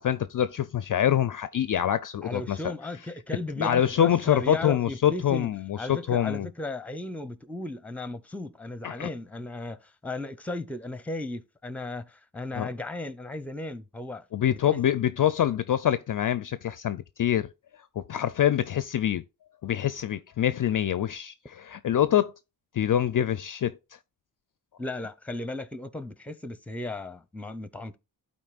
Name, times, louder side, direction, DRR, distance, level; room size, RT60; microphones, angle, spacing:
voice 1, 0.0-2.6 3.6-6.5 8.8-9.1 12.5-12.7 14.3-17.5 18.0-19.2 19.6-22.3 22.7-23.7, left 10 dB, 45° left, 0.4 m, -25 dB
voice 2, 2.2-5.5 5.8-14.8 24.8-28.0, left 2 dB, 5° left, 0.7 m, -36 dB
12.0 x 4.3 x 2.4 m
supercardioid pair, 40°, 45 cm